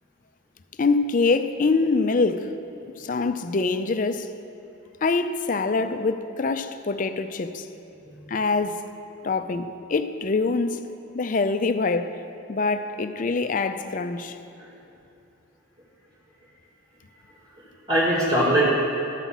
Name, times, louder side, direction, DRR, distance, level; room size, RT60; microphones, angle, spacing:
voice 1, 0.8-2.6 3.0-4.3 5.0-7.7 8.3-8.8 9.2-10.9 11.1-12.2 12.5-14.4, left 3 dB, 40° left, 0.4 m, -24 dB
voice 2, 17.6-18.7, right 1 dB, 30° right, 1.8 m, -22 dB
13.0 x 5.7 x 7.2 m
head